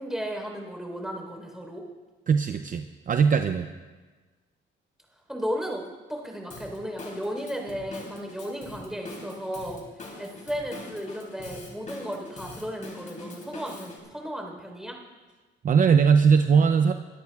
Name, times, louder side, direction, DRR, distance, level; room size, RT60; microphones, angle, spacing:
voice 1, 0.0-1.8 5.3-5.8 6.1-9.8 10.2-15.0, equal, ahead, 1 dB, 3.9 m, -34 dB
voice 2, 2.3-3.7 15.6-16.9, right 6 dB, 45° right, 8 dB, 0.6 m, -20 dB
Drum kit / Drum, 6.5-14.0, left 2 dB, 40° left, 3.3 m, -43 dB
23.0 x 13.0 x 2.4 m, 1.3 s
cardioid pair, 90°, 20 cm